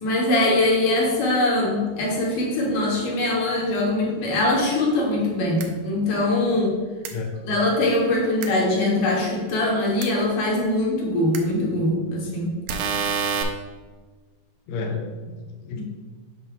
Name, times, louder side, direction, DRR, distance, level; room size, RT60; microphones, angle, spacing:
voice 1, 0.0-6.7 7.4-12.5 15.8-15.9, left 1 dB, 65° left, -3 dB, 2.7 m, -22 dB
sound 1, 5.6-5.7 7.1-7.2 8.4-8.5 10.0-10.1 11.3-11.4 12.7-13.4, right 6 dB, 85° right, 1.7 m, -26 dB
voice 2, 14.7-15.8, left 4 dB, 85° left, 2 dB, 1.5 m, -31 dB
7.6 x 2.7 x 5.8 m, 1.4 s
omnidirectional pair, 4.2 m